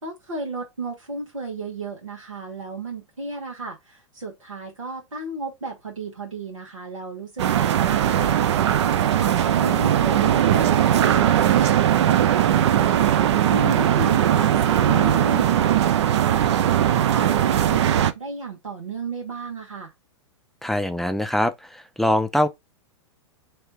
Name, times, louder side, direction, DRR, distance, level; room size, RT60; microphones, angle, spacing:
voice 1, 0.0-8.5 8.9-11.2 13.5-19.9, right 2 dB, 85° right, 1.4 m, -34 dB
sound 1, 7.4-18.1, right 10 dB, 60° right, 0.6 m, -19 dB
voice 2, 20.6-22.5, left 1 dB, ahead, 0.5 m, -23 dB
3.2 x 2.9 x 4.6 m
figure-of-eight pair, 100°, 16 cm